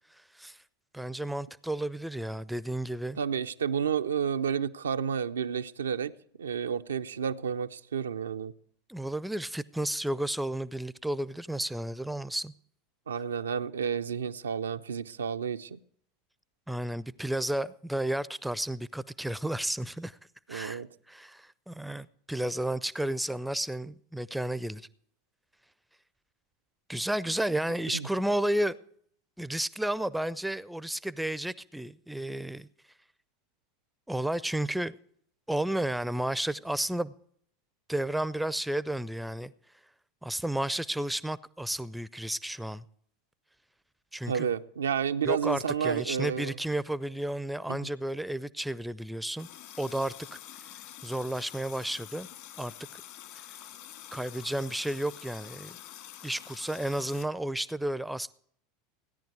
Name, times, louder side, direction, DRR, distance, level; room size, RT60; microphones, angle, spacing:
voice 1, 0.9-3.2 8.9-12.5 16.7-20.2 20.5-20.8 21.1-24.9 26.9-28.8 29.4-32.7 34.1-34.9 35.5-37.1 37.9-39.5 40.2-42.8 44.1-44.5 45.2-49.5 49.8-50.4 51.0-52.3 52.6-53.0 54.1-55.8 56.2-58.3, right 1 dB, 5° right, 0.4 m, -32 dB
voice 2, 3.2-8.5 13.1-15.8 20.5-20.9 27.9-28.1 44.3-46.6 47.7-47.9, right 7 dB, 75° right, 0.4 m, -31 dB
Water tap faucet, 49.4-57.2, left 12 dB, 55° left, 1.5 m, -47 dB
16.5 x 10.5 x 4.6 m
figure-of-eight pair, 80°, 0 cm